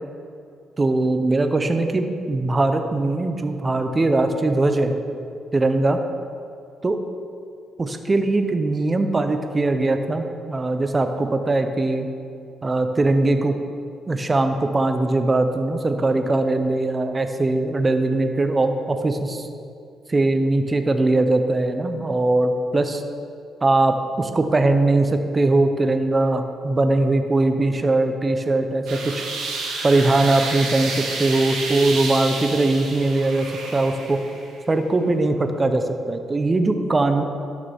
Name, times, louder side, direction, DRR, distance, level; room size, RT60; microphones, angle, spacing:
voice 1, 0.8-4.9 5.5-6.0 6.8-7.0 7.8-12.1 12.6-13.5 14.1-19.5 20.1-23.0 23.6-29.2 29.8-30.9 31.2-33.5 33.7-34.2 34.7-37.2, right 2 dB, 25° right, 7 dB, 0.7 m, -20 dB
sound 1, 28.9-34.5, right 3 dB, 85° right, 1.8 m, -30 dB
12.5 x 6.5 x 3.6 m, 2.4 s
cardioid pair, 90°, 0 cm